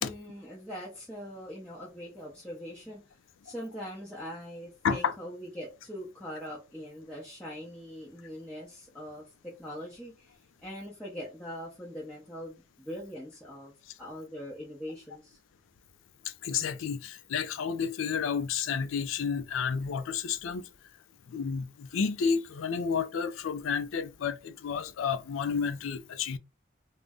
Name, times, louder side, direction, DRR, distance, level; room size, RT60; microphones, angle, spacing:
voice 1, 0.0-3.0 3.4-13.7 14.0-15.4, equal, 5° left, 0.7 m, -42 dB
voice 2, 16.4-20.7 21.3-26.4, left 6 dB, 90° left, 0.4 m, -31 dB
2.6 x 2.1 x 3.5 m
head